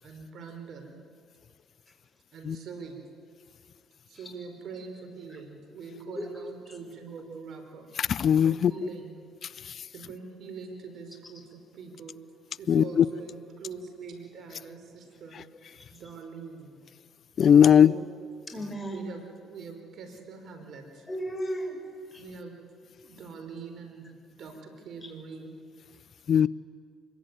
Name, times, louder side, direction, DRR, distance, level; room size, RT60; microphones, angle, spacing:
voice 1, 0.0-1.0 2.3-3.0 4.1-7.9 8.4-9.2 9.9-12.1 12.6-15.4 15.9-16.8 17.8-18.1 18.9-21.1 22.2-22.5 23.0-25.5, right 5 dB, 60° right, 6 dB, 4.9 m, -43 dB
voice 2, 8.0-8.9 12.7-13.0 17.4-17.9 26.3-26.5, left 8 dB, 55° left, 20 dB, 0.6 m, -19 dB
voice 3, 18.5-19.1 21.1-21.8 22.1-22.2 25.0-25.1, equal, 20° left, 4 dB, 5.4 m, -35 dB
24.5 x 22.0 x 9.3 m, 2.1 s
supercardioid pair, 75°, 0 cm